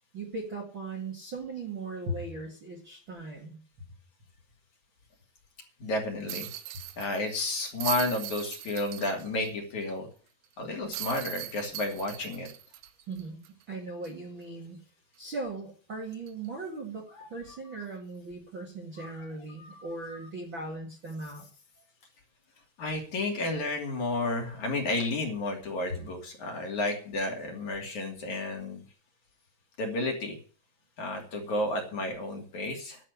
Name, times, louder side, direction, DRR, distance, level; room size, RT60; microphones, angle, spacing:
voice 1, 0.1-3.6 13.1-14.8 15.2-21.5, right 2 dB, 40° right, -1 dB, 2.1 m, -38 dB
voice 2, 5.8-6.5 7.0-10.1 10.6-12.5 17.2-17.3 19.0-19.1 19.6-19.7 20.1-20.3 22.8-28.8 29.8-30.4 31.0-33.0, left 2 dB, 50° left, 1 dB, 3.7 m, -32 dB
sound 1, 6.3-9.5 9.8-9.9 10.9-13.6 14.0-14.1 16.3-16.5, right 13 dB, 85° right, 1.8 m, -39 dB
11.0 x 7.2 x 9.6 m, 0.41 s
omnidirectional pair, 4.8 m